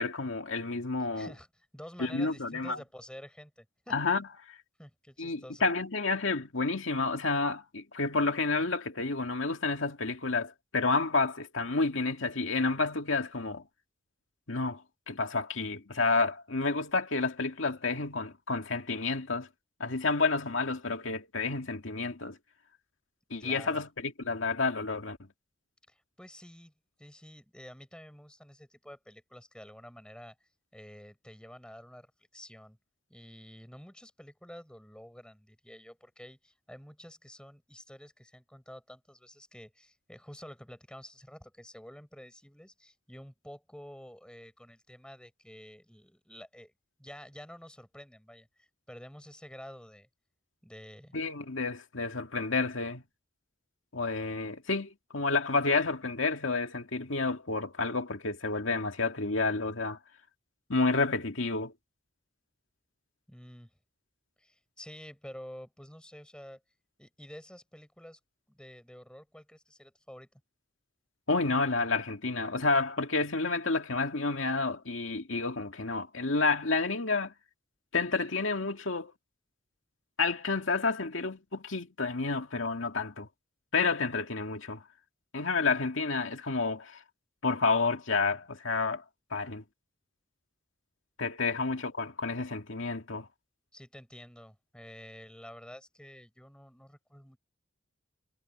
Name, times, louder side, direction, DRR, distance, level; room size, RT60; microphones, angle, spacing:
voice 1, 0.0-1.3 2.0-2.8 3.9-4.3 5.2-13.6 14.5-14.8 15.1-19.5 19.8-22.4 23.3-25.2 51.1-53.0 53.9-60.0 60.7-61.7 71.3-77.3 77.9-79.1 80.2-83.3 83.7-84.8 85.3-87.0 87.4-89.0 89.3-89.6 91.2-93.3, left 3 dB, 80° left, 2.1 m, -30 dB
voice 2, 1.2-4.0 4.8-5.7 23.4-23.8 25.9-26.7 27.0-30.4 30.7-32.8 33.1-46.7 47.0-50.1 50.6-51.2 63.3-63.7 64.4-66.6 67.0-68.2 68.5-70.3 91.4-91.7 93.7-97.4, equal, 5° left, 6.9 m, -50 dB
head